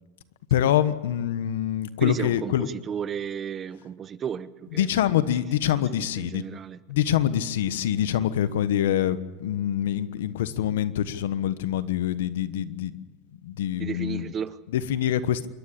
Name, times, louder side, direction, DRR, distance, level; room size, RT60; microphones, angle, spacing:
voice 1, 0.5-2.7 4.8-6.4 6.9-12.9 13.4-14.3 14.7-15.5, left 11 dB, 90° left, 1.2 m, -25 dB
voice 2, 2.0-4.9 5.9-6.8 13.8-14.6, right 7 dB, 30° right, 0.9 m, -33 dB
27.5 x 12.5 x 8.6 m
supercardioid pair, 125°, 0 cm